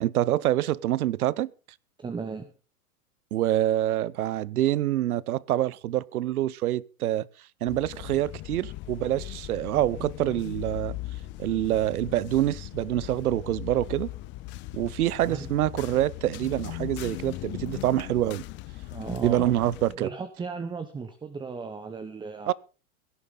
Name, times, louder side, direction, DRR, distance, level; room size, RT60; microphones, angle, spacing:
voice 1, 0.0-1.5 3.3-7.3 7.6-11.0 11.4-14.1 14.7-18.4 19.2-20.1 22.5-22.6, right 13 dB, 75° right, 24 dB, 0.7 m, -26 dB
voice 2, 2.0-2.5 15.2-15.5 18.9-19.6 20.0-22.5, right 5 dB, 10° right, 9 dB, 1.0 m, -36 dB
sound 1, 7.7-20.0, left 17 dB, 25° left, 0.6 m, -39 dB
17.0 x 11.0 x 4.1 m, 0.34 s
hypercardioid pair, 120°, 44 cm